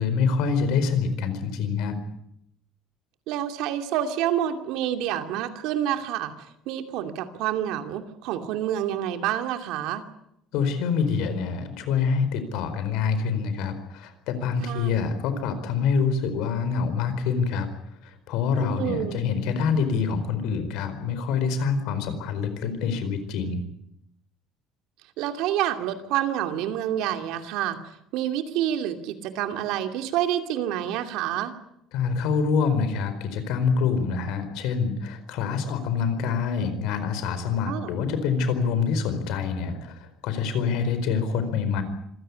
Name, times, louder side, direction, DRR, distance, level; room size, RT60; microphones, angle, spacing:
voice 1, 0.0-2.0 10.5-17.7 18.3-23.6 31.9-39.9 40.2-41.8, left 5 dB, 70° left, 11 dB, 4.5 m, -26 dB
voice 2, 3.3-6.3 6.7-10.0 14.6-15.1 18.5-19.2 25.2-27.8 28.1-31.5 37.5-37.9, right 11 dB, 70° right, 7 dB, 2.6 m, -28 dB
26.5 x 16.0 x 9.7 m, 0.76 s
cardioid pair, 175°, 0 cm